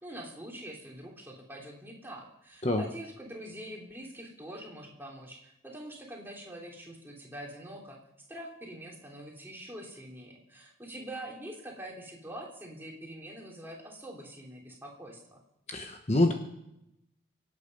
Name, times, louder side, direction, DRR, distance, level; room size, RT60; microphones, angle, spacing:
voice 1, 0.0-8.0 8.3-15.4, right 1 dB, 10° right, -2 dB, 3.1 m, -44 dB
voice 2, 15.7-16.3, left 1 dB, 35° left, 4 dB, 1.1 m, -26 dB
25.0 x 8.7 x 5.4 m, 0.84 s
head